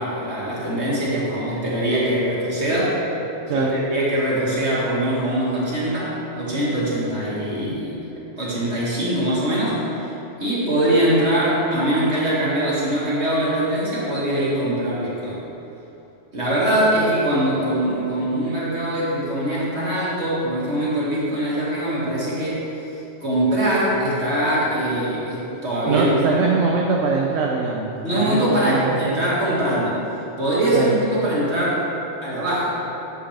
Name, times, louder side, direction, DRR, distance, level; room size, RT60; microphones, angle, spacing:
voice 1, 0.0-3.0 3.5-7.9 8.4-9.8 10.4-15.4 16.3-22.6 23.2-26.1 28.0-30.0 30.4-31.8 32.2-32.8, right 1 dB, 60° right, -8 dB, 2.5 m, -22 dB
voice 2, 25.9-29.2 30.7-30.9, right 4 dB, 75° right, -1 dB, 1.1 m, -22 dB
11.0 x 7.5 x 3.4 m, 3.0 s
omnidirectional pair, 1.3 m